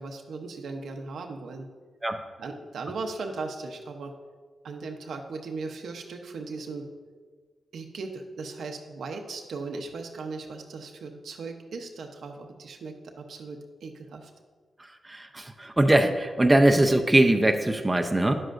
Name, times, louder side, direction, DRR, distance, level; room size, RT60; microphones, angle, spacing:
voice 1, 0.0-1.7 2.4-4.1 4.6-6.9 7.7-14.3, right 3 dB, 80° right, 4 dB, 0.8 m, -37 dB
voice 2, 15.1-18.3, right 1 dB, 20° right, 5 dB, 0.6 m, -21 dB
9.9 x 7.7 x 2.5 m, 1.5 s
cardioid pair, 60°, 0 cm